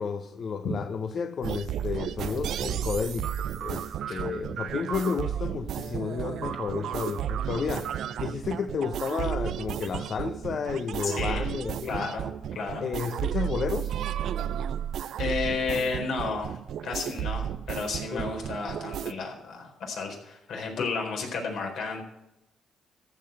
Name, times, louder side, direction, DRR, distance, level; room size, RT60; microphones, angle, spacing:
voice 1, 0.0-7.9 8.2-12.1 12.8-14.0 18.1-18.3 20.8-20.9, left 6 dB, 55° left, 9 dB, 0.7 m, -32 dB
sound 1, 1.4-19.1, right 10 dB, 70° right, 0.5 m, -33 dB
voice 2, 11.0-11.5 11.8-12.8 15.2-16.6 16.8-22.0, left 4 dB, 75° left, 1 dB, 4.3 m, -32 dB
14.0 x 5.8 x 8.8 m, 0.88 s
cardioid pair, 90°, 0 cm